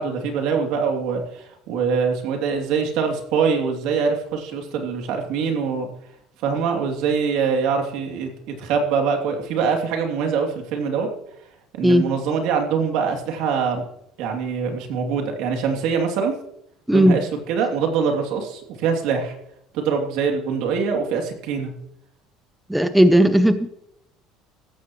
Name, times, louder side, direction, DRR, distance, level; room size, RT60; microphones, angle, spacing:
voice 1, 0.0-5.9 6.4-8.3 8.6-11.1 11.8-13.8 14.2-16.3 16.9-19.3 19.7-21.7, right 6 dB, 65° right, 3 dB, 2.8 m, -23 dB
voice 2, 16.9-17.2 22.7-23.7, equal, 5° right, 10 dB, 0.5 m, -15 dB
15.5 x 13.5 x 3.1 m, 0.77 s
cardioid pair, 165°, 0 cm